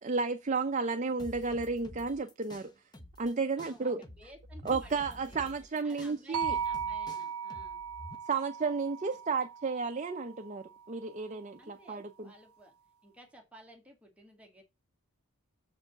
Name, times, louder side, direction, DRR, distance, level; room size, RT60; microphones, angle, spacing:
voice 1, 0.0-2.7 3.2-4.0 4.6-6.6 8.3-12.3, right 4 dB, 35° right, 0.6 m, -32 dB
sound 1, 1.2-3.3 3.6-8.2, left 1 dB, 20° left, 1.1 m, -49 dB
voice 2, 3.6-7.8 9.3-9.4 11.6-12.7 13.0-14.6, right 1 dB, 5° right, 1.9 m, -56 dB
sound 2, 6.3-10.5, right 7 dB, 80° right, 0.4 m, -37 dB
7.0 x 4.8 x 6.5 m
head